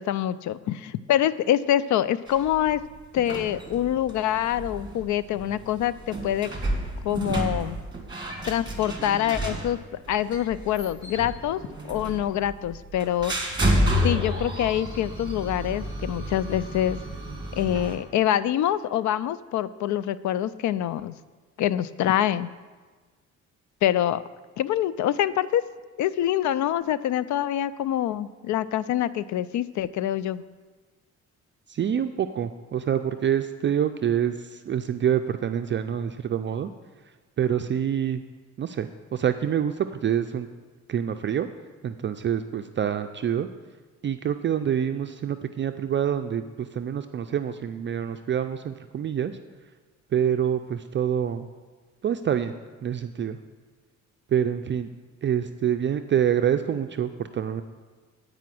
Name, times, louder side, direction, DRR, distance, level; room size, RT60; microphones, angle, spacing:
voice 1, 0.0-2.8 3.1-6.5 7.0-7.8 8.5-9.8 10.1-11.6 11.9-13.3 14.0-17.0 17.5-21.2 21.6-22.5 23.8-24.2 24.6-25.6 26.0-30.4, left 11 dB, 70° left, 17 dB, 0.4 m, -25 dB
sound 1, 2.3-18.0, equal, 15° right, 1.8 m, -31 dB
voice 2, 31.7-36.7 37.4-38.2 38.6-40.5 40.9-41.5 41.8-43.5 44.0-49.4 50.1-51.5 52.0-52.5 52.8-53.4 54.3-54.9 55.2-57.6, right 9 dB, 40° right, 8 dB, 0.4 m, -26 dB
9.4 x 5.0 x 7.6 m, 1.4 s
cardioid pair, 90°, 30 cm